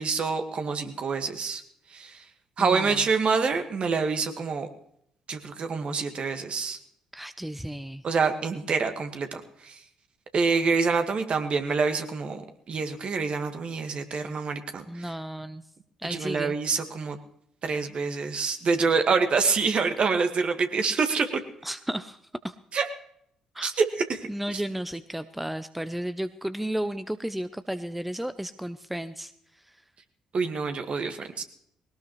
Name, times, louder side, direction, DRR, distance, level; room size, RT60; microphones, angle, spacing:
voice 1, 0.0-1.6 1.9-2.2 2.6-4.7 5.3-6.8 8.0-9.8 10.3-15.1 16.1-17.2 17.6-21.3 22.7-22.9 23.6-24.6 30.3-31.4, right 4 dB, 45° right, 6 dB, 1.8 m, -26 dB
voice 2, 2.6-3.1 7.1-8.0 14.9-15.6 16.0-16.6 21.6-22.6 23.5-23.7 24.3-29.8, right 1 dB, 5° right, 12 dB, 0.7 m, -33 dB
20.5 x 18.5 x 3.2 m, 0.72 s
hypercardioid pair, 45°, 2 cm